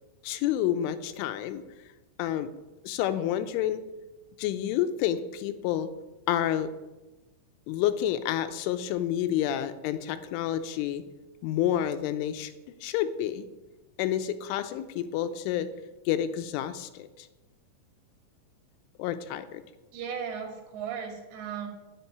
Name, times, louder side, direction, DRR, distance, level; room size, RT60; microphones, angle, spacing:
voice 1, 0.2-1.6 2.2-2.5 2.8-3.8 4.4-5.9 6.3-6.7 7.7-11.0 11.4-12.5 12.8-13.5 14.0-15.7 16.1-17.3 19.0-19.6, left 11 dB, 85° left, 11 dB, 3.3 m, -29 dB
voice 2, 19.9-21.7, right 7 dB, 55° right, 1 dB, 4.2 m, -36 dB
10.0 x 7.9 x 9.5 m, 1.1 s
omnidirectional pair, 5.5 m